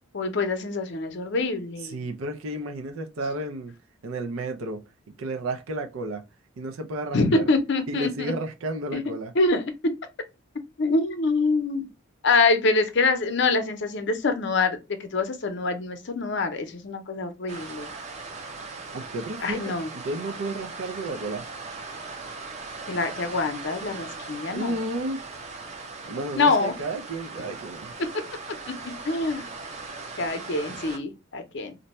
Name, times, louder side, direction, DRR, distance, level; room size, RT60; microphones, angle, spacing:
voice 1, 0.1-2.0 7.1-8.3 8.9-9.0 9.4-9.9 10.8-11.9 12.2-17.9 19.4-19.9 22.9-24.8 26.4-26.8 28.0-29.5 30.2-31.7, left 3 dB, 60° left, 0.6 m, -25 dB
voice 2, 1.8-3.7 4.0-4.8 5.2-6.2 6.6-7.4 7.9-9.3 18.9-21.4 24.5-25.2 26.1-27.9, right 2 dB, 85° right, 0.5 m, -32 dB
sound 1, 17.5-31.0, right 3 dB, 35° right, 0.5 m, -39 dB
2.6 x 2.2 x 4.0 m
head